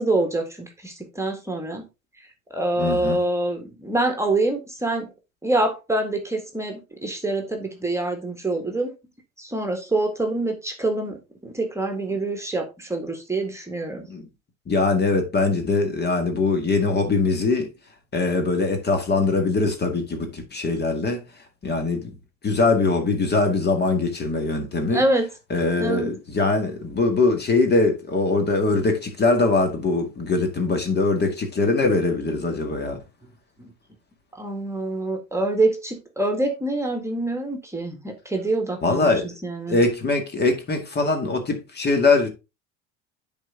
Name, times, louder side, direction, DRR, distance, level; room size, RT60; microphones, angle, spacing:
voice 1, 0.0-1.8 2.5-5.1 5.4-8.9 9.4-14.1 24.9-25.3 25.8-26.1 33.6-33.7 34.3-39.1 39.4-39.8, right 2 dB, 10° right, 1.8 m, -25 dB
voice 2, 2.8-3.2 14.1-14.3 14.7-17.7 18.1-21.2 21.6-22.1 22.4-25.0 25.5-33.0 38.8-39.3 39.7-42.3, left 3 dB, 30° left, 1.9 m, -22 dB
10.0 x 4.3 x 3.7 m
figure-of-eight pair, 70°, 34 cm